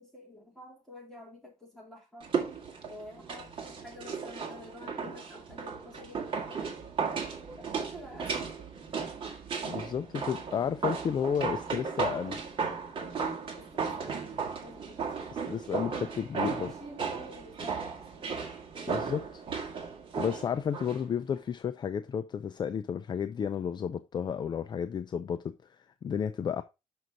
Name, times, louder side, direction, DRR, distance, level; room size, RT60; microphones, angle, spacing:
voice 1, 0.0-2.3 2.9-6.2 6.5-6.7 7.6-8.7 13.6-15.0 16.3-18.4, left 1 dB, 5° left, 3.4 m, -49 dB
sound 1, 2.2-21.0 21.3-21.4, right 5 dB, 40° right, 2.0 m, -35 dB
voice 2, 9.6-12.4 15.3-16.7 18.9-19.4 20.2-26.6, left 7 dB, 35° left, 0.4 m, -32 dB
6.2 x 6.1 x 3.9 m
cardioid pair, 160°, 13 cm